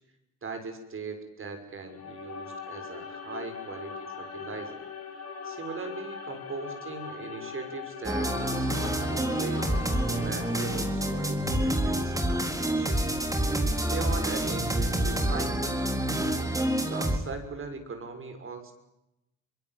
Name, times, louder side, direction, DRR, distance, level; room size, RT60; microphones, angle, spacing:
voice 1, 0.4-4.8 5.4-13.0 13.9-15.8 16.8-18.7, right 4 dB, 45° right, 6 dB, 6.3 m, -39 dB
sound 1, 1.8-11.3, left 5 dB, 55° left, 6.3 m, -40 dB
sound 2, 8.0-17.2, right 1 dB, 10° right, 4.3 m, -27 dB
24.0 x 22.0 x 9.4 m, 0.88 s
cardioid pair, 90°, 30 cm